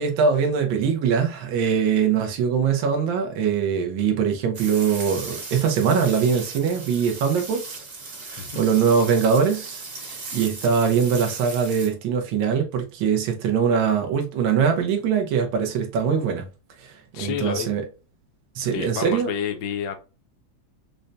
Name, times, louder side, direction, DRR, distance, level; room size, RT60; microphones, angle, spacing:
voice 1, 0.0-7.8 8.2-16.5 16.8-17.8 18.5-19.3, right 6 dB, 80° right, 1.5 m, -22 dB
sound 1, 4.5-11.9, right 3 dB, 40° right, 1.0 m, -37 dB
voice 2, 17.1-17.7 18.6-20.0, left 7 dB, 65° left, 1.1 m, -29 dB
5.2 x 2.2 x 2.6 m
omnidirectional pair, 2.1 m